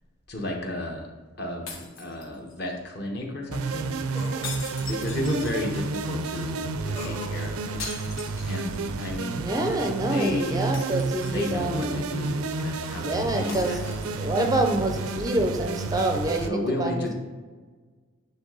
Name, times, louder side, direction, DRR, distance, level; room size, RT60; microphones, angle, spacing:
voice 1, 0.3-1.1 1.4-4.0 4.8-7.8 8.4-9.6 10.0-10.7 11.2-14.6 16.4-17.1, left 1 dB, 50° left, 0 dB, 1.2 m, -33 dB
sound 1, 1.7-2.7 4.4-6.0 7.8-9.0 9.3-9.4 10.7-11.8 13.5-14.4, left 4 dB, 65° left, 1.3 m, -41 dB
sound 2, 1.8-1.9 4.1-4.6 6.9-7.5, left 1 dB, 30° left, 0.9 m, -40 dB
sound 3, 3.5-16.5, right 3 dB, 85° right, 0.5 m, -31 dB
voice 2, 9.4-12.4 13.0-13.8 14.1-17.1, right 1 dB, 15° right, 3 dB, 0.5 m, -27 dB
9.7 x 3.4 x 3.9 m, 1.4 s
head